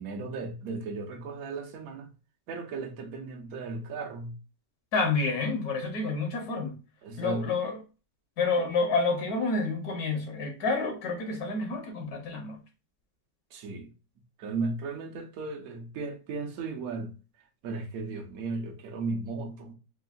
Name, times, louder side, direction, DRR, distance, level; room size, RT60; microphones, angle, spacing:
voice 1, 0.0-2.1 2.5-4.3 7.0-7.5 13.5-13.9 14.4-17.1 17.6-19.7, right 3 dB, 60° right, 1.2 m, -35 dB
voice 2, 4.9-6.8 7.2-7.8 8.4-12.6, left 3 dB, 65° left, 1.4 m, -29 dB
4.5 x 2.6 x 2.5 m
omnidirectional pair, 1.8 m